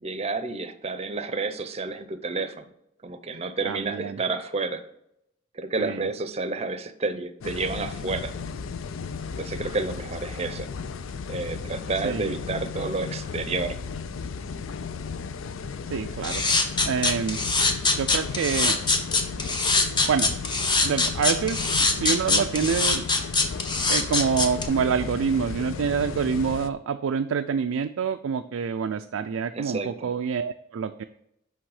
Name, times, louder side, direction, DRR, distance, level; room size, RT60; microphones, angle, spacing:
voice 1, 0.0-2.6 3.0-4.8 5.5-8.3 9.3-10.7 11.3-13.8 29.5-30.1, right 3 dB, 30° right, 10 dB, 0.6 m, -30 dB
voice 2, 3.6-4.2 5.8-6.1 12.0-12.4 15.9-17.4 18.0-18.8 20.1-20.3 20.8-23.0 23.9-31.0, right 6 dB, 85° right, 8 dB, 0.4 m, -27 dB
sound 1, 7.4-26.7, left 5 dB, 75° left, 0.5 m, -35 dB
sound 2, 16.2-24.7, left 3 dB, 25° left, 0.8 m, -23 dB
6.2 x 5.4 x 4.9 m, 0.79 s
head